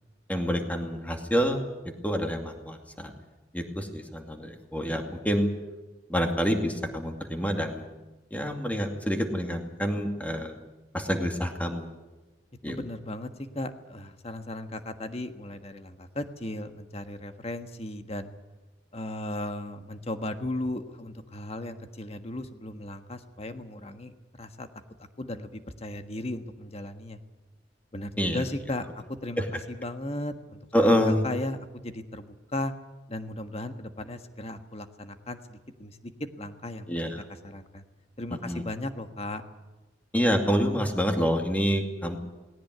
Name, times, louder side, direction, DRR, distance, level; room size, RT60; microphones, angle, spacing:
voice 1, 0.3-1.6 2.0-3.1 3.5-5.5 6.1-7.8 8.3-10.6 10.9-11.9 12.6-12.8 28.2-28.4 29.4-29.5 30.7-31.2 36.9-37.2 38.5-38.6 40.1-42.2, equal, 10° left, 3 dB, 2.5 m, -27 dB
voice 2, 12.7-18.3 18.9-24.1 24.4-24.7 25.0-27.2 27.9-30.9 31.2-32.7 33.1-36.1 36.4-37.1 37.4-37.8 38.2-39.4, left 1 dB, 35° left, 8 dB, 1.5 m, -36 dB
19.0 x 17.5 x 9.4 m, 1.2 s
head